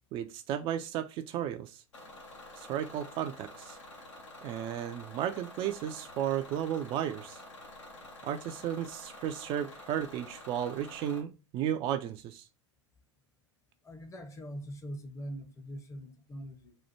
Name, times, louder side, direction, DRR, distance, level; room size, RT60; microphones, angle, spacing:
voice 1, 0.1-1.8 2.6-3.8 4.4-7.4 8.2-12.5, right 10 dB, 35° right, 0.4 m, -34 dB
Bus / Engine, 1.9-11.2, left 1 dB, 80° left, 1.1 m, -49 dB
voice 2, 13.8-16.8, equal, 20° left, 0.8 m, -42 dB
4.2 x 2.3 x 4.4 m
figure-of-eight pair, 85°, 15 cm